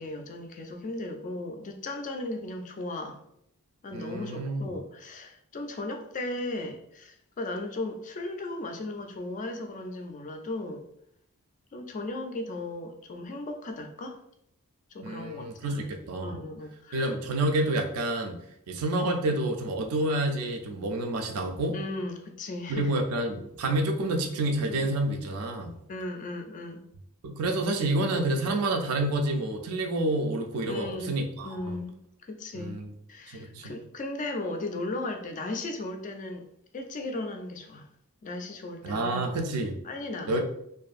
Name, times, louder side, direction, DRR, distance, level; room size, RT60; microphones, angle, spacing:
voice 1, 0.0-3.2 3.8-10.8 11.7-14.2 14.9-15.9 16.2-17.1 19.0-19.2 21.7-22.9 24.6-24.9 25.9-26.8 30.7-31.9 32.2-32.8 33.1-36.4 36.7-37.9 38.2-39.3 39.8-40.4, left 2 dB, 35° left, 5 dB, 0.3 m, -36 dB
voice 2, 3.9-4.7 15.0-16.4 16.9-18.4 18.7-21.8 22.7-25.7 27.2-31.8 32.5-32.9 33.3-33.7 38.8-39.8 40.3-40.4, right 2 dB, 80° right, 4 dB, 0.4 m, -28 dB
2.5 x 2.5 x 2.3 m, 0.73 s
head